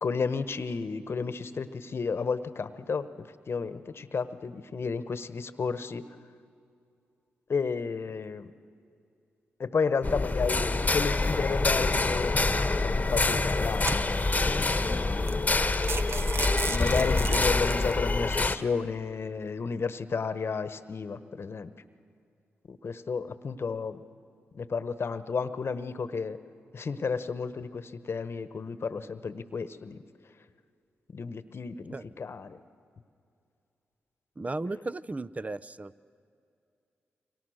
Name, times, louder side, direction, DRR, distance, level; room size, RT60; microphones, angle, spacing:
voice 1, 0.0-6.0 7.5-8.5 9.6-12.4 12.8-14.6 14.8-15.5 16.7-21.7 22.7-24.0 24.5-26.4 26.7-30.0 31.1-32.6, left 5 dB, 55° left, 13 dB, 1.2 m, -32 dB
sound 1, 10.0-18.6, left 3 dB, 30° left, 1.3 m, -26 dB
sound 2, 12.5-12.8 13.4-14.4 14.9-15.0 15.3-15.4 15.7-17.9, right 4 dB, 55° right, 1.1 m, -35 dB
voice 2, 34.4-35.9, right 2 dB, 30° right, 17 dB, 0.8 m, -35 dB
28.0 x 24.0 x 6.5 m, 2.5 s
supercardioid pair, 40°, 5 cm